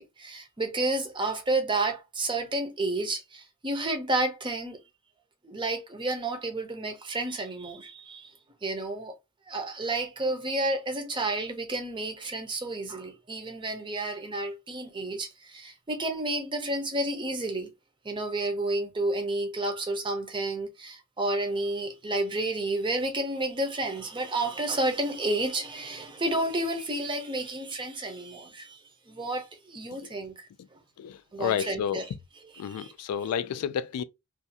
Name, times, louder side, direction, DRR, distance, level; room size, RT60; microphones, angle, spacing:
voice 1, 0.0-4.8 5.4-8.3 8.6-9.2 9.5-17.7 18.0-30.5 31.3-32.1 32.4-32.9 33.2-33.3, right 2 dB, 20° right, 0.6 m, -31 dB
voice 2, 31.0-32.0 32.6-34.0, left 8 dB, 85° left, 0.3 m, -30 dB
2.5 x 2.3 x 2.7 m
head